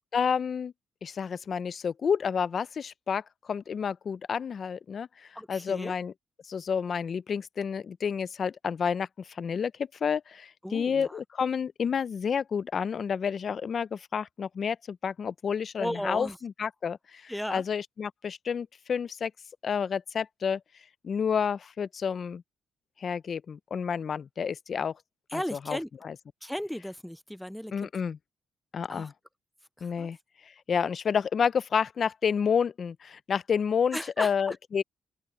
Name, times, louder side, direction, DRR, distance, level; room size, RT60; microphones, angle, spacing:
voice 1, 0.1-0.7 1.0-3.2 3.5-6.1 6.5-19.3 19.6-20.6 21.0-22.4 23.0-24.9 25.3-26.2 27.7-28.2 28.7-29.1 29.8-30.2 30.7-34.8, left 6 dB, 50° left, 0.6 m, -30 dB
voice 2, 5.4-5.9 10.6-11.2 15.8-16.4 17.3-17.6 25.3-25.9 26.4-27.9 28.9-29.1 29.8-30.1 33.9-34.6, equal, 5° left, 0.4 m, -35 dB
open air
cardioid pair, 90°, 0 cm